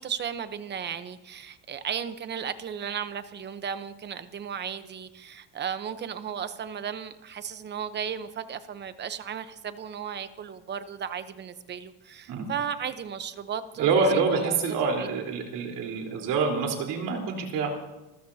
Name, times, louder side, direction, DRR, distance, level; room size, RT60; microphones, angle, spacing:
voice 1, 0.0-13.9 14.3-14.6 15.0-15.1, right 8 dB, 30° right, 11 dB, 1.0 m, -35 dB
voice 2, 13.8-17.7, right 4 dB, 60° right, 1 dB, 4.2 m, -26 dB
27.0 x 15.5 x 2.9 m, 1.0 s
cardioid pair, 150°, 37 cm